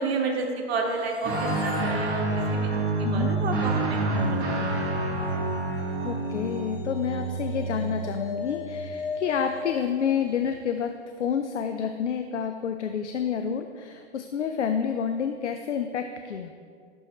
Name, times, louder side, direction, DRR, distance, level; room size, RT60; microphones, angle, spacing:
voice 1, 0.0-2.7 3.1-4.4 4.7-4.8, right 4 dB, 60° right, 2 dB, 1.4 m, -31 dB
sound 1, 0.7-10.9, left 5 dB, 40° left, 1.9 m, -39 dB
Guitar, 1.2-8.9, right 2 dB, 25° right, 1.8 m, -28 dB
voice 2, 6.0-16.5, left 7 dB, 85° left, 6 dB, 0.6 m, -29 dB
11.0 x 6.3 x 3.1 m, 2.1 s
hypercardioid pair, 115°, 34 cm